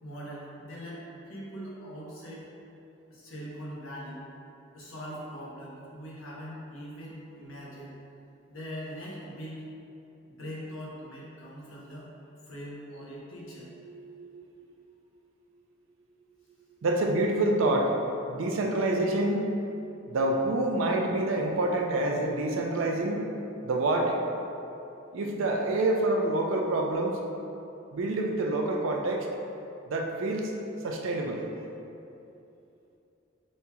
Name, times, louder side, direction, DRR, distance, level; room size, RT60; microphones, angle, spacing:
voice 1, 0.0-2.5 3.1-4.2 4.7-8.0 8.5-9.6 10.4-12.1 12.5-13.7, equal, 90° left, -6 dB, 1.0 m, -41 dB
voice 2, 13.8-14.3 16.8-17.9 18.3-19.5 20.1-23.3 23.6-24.2 25.1-27.2 27.9-29.3 29.9-30.5 30.8-31.4, right 2 dB, 80° right, 1 dB, 0.5 m, -27 dB
5.2 x 2.8 x 2.3 m, 2.8 s
head